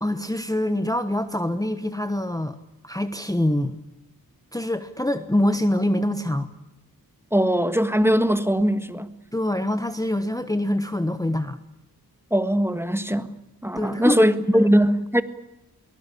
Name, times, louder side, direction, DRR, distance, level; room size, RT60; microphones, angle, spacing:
voice 1, 0.0-2.6 2.8-3.8 4.5-6.5 9.3-11.6 13.7-14.3 14.5-14.7, left 1 dB, 10° left, 1.2 m, -25 dB
voice 2, 7.3-9.1 12.3-13.3 13.6-15.2, equal, 5° right, 1.5 m, -20 dB
23.0 x 20.0 x 8.5 m
wide cardioid pair, 70°, 37 cm